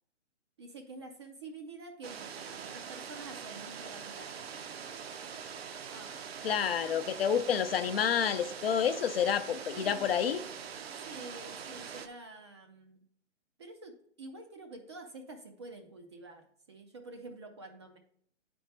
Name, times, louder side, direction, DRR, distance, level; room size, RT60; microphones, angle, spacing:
voice 1, 0.6-4.5 5.9-6.6 6.8-7.1 9.7-10.1 11.1-13.0 13.6-18.0, right 2 dB, 25° right, 4 dB, 0.4 m, -48 dB
sound 1, 2.0-12.1, right 7 dB, 55° right, 0.7 m, -43 dB
voice 2, 6.4-10.4, left 8 dB, 55° left, 10 dB, 0.6 m, -29 dB
9.0 x 4.3 x 3.2 m, 0.64 s
hypercardioid pair, 140°, 36 cm